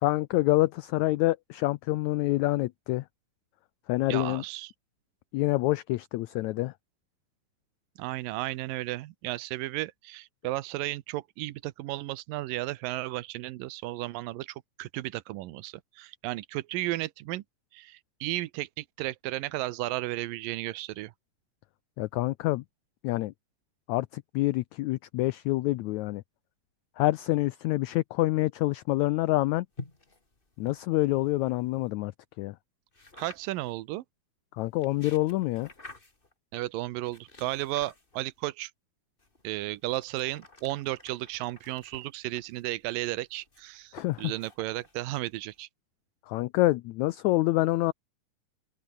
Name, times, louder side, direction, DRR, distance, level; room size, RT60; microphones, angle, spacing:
voice 1, 0.0-3.0 3.9-4.4 5.3-6.7 22.0-22.6 23.0-23.3 23.9-26.2 27.0-29.7 30.6-32.1 32.4-32.5 34.6-35.7 43.9-44.3 46.3-47.9, left 18 dB, 85° left, 1.6 m, -27 dB
voice 2, 4.1-4.7 8.0-17.4 17.7-21.1 33.2-34.0 36.5-38.7 39.4-45.7, right 17 dB, 90° right, 2.6 m, -34 dB
sound 1, 29.7-31.9 32.9-33.7 34.6-36.3 37.0-38.4 39.2-45.6, left 2 dB, 15° left, 2.6 m, -50 dB
open air
omnidirectional pair, 3.9 m